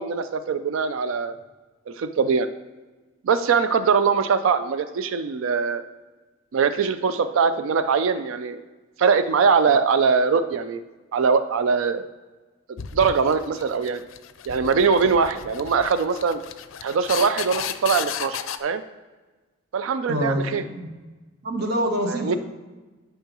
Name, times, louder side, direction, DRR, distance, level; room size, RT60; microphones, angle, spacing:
voice 1, 0.0-1.4 2.0-2.5 3.2-5.8 6.5-8.6 9.0-10.8 11.1-12.0 12.9-14.0 14.5-16.4 16.8-18.8 19.7-20.6 22.1-22.4, right 5 dB, 80° right, 11 dB, 0.4 m, -22 dB
sound 1, 12.8-18.6, left 9 dB, 80° left, 0.4 m, -34 dB
voice 2, 20.1-20.9 21.4-22.4, equal, 50° right, 3 dB, 0.9 m, -26 dB
8.9 x 5.6 x 2.9 m, 1.2 s
head